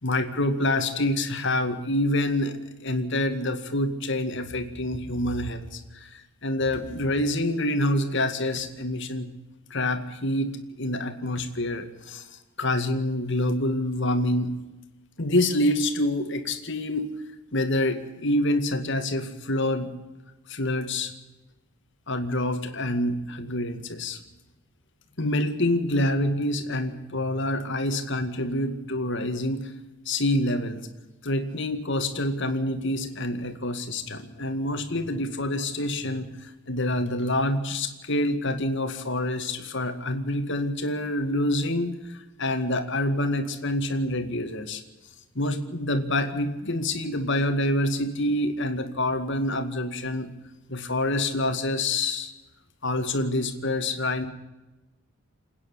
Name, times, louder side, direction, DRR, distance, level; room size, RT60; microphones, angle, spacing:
voice 1, 0.0-9.3 9.7-14.5 15.2-17.1 17.5-19.9 20.5-21.1 22.1-24.2 25.2-29.7 30.1-30.8 31.2-44.8 45.4-50.3 50.7-52.3 52.8-54.2, left 1 dB, 55° left, 7 dB, 2.1 m, -27 dB
28.5 x 9.8 x 9.7 m, 1.1 s
head